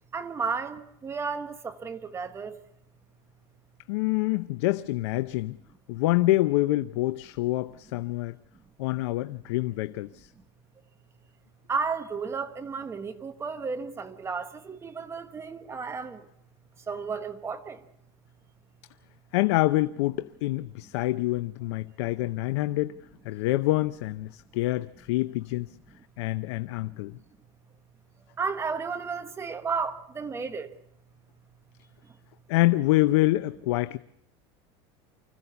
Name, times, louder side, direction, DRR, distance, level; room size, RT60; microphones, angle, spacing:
voice 1, 0.1-2.6 11.7-16.2 16.9-17.8 28.4-30.7, right 5 dB, 20° right, 1.2 m, -33 dB
voice 2, 3.9-5.6 5.9-8.4 8.8-10.3 19.3-23.0 23.2-25.7 26.2-27.2 32.5-34.0, left 18 dB, 85° left, 0.7 m, -26 dB
25.0 x 15.5 x 7.0 m
supercardioid pair, 150°, 14 cm